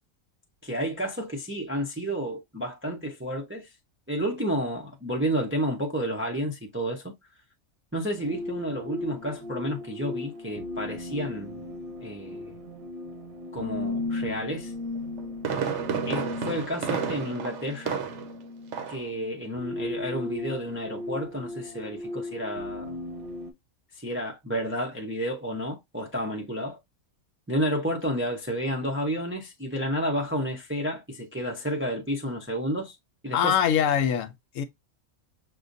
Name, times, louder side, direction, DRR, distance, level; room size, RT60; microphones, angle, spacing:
voice 1, 0.6-3.7 4.1-7.1 7.9-11.6 12.0-12.5 13.5-14.7 16.0-18.0 18.9-23.0 23.9-26.8 27.5-33.0 33.2-33.5, equal, 15° right, 0.5 m, -31 dB
sound 1, 8.2-23.5, left 2 dB, 90° right, 1.4 m, -36 dB
Fireworks, 15.0-18.4 18.7-19.1 19.4-19.5, right 7 dB, 65° right, 1.0 m, -31 dB
voice 2, 33.3-34.6, left 8 dB, 75° left, 0.9 m, -24 dB
6.2 x 2.2 x 2.5 m
omnidirectional pair, 1.4 m